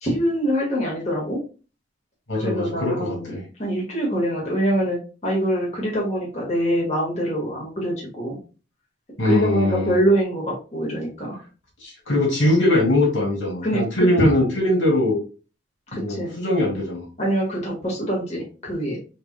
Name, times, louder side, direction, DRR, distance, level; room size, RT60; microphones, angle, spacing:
voice 1, 0.0-1.4 2.4-8.4 9.2-11.4 13.6-14.4 15.9-16.3 17.2-19.0, equal, 35° left, -3 dB, 1.7 m, -24 dB
voice 2, 2.3-3.4 9.2-10.0 11.8-15.2 15.9-17.1, left 1 dB, 80° left, -1 dB, 2.3 m, -21 dB
6.7 x 3.1 x 2.2 m, 0.34 s
head